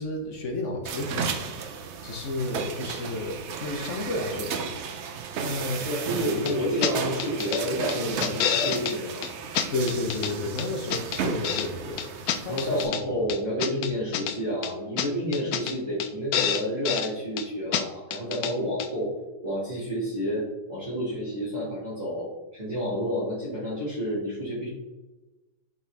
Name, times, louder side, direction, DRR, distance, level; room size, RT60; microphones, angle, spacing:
voice 1, 0.0-1.6 2.0-4.8 5.4-5.9 6.1-6.6 8.0-8.2 9.7-13.3, left 2 dB, 55° left, 2 dB, 1.2 m, -32 dB
sound 1, 0.8-12.8, right 6 dB, 60° right, 0.8 m, -34 dB
voice 2, 5.8-9.2 12.5-19.1 19.4-24.7, equal, 25° right, -10 dB, 2.2 m, -30 dB
sound 2, 6.5-6.6 6.8-6.9 7.2-7.6 7.9-8.9 9.2-9.3 9.6-10.3 10.6-11.7 12.0-13.0 13.3-14.4 14.6-14.7 15.0-15.1 15.3-15.7 16.0-16.1 16.3-17.1 17.4-17.5 17.7-17.8 18.1-18.5 18.8-18.9, left 9 dB, 75° left, 1.0 m, -28 dB
8.0 x 4.4 x 3.5 m, 1.1 s
omnidirectional pair, 1.6 m